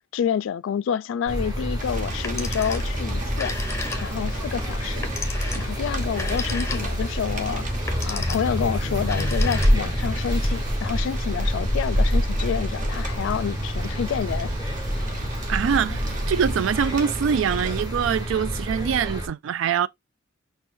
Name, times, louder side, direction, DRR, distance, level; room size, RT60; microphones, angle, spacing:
voice 1, 0.1-3.6 4.0-5.1 5.6-7.7 8.0-14.5, left 8 dB, 75° left, 0.3 m, -28 dB
sound 1, 1.3-19.3, equal, 20° right, 1.4 m, -29 dB
Rain, 1.8-17.8, equal, 40° right, 0.9 m, -30 dB
Telephone, 2.2-3.0 3.3-4.3 5.0-7.1 7.8-8.6 9.0-10.0, left 4 dB, 15° left, 0.7 m, -34 dB
voice 2, 15.5-19.9, right 7 dB, 80° right, 0.3 m, -24 dB
6.1 x 2.2 x 2.6 m
head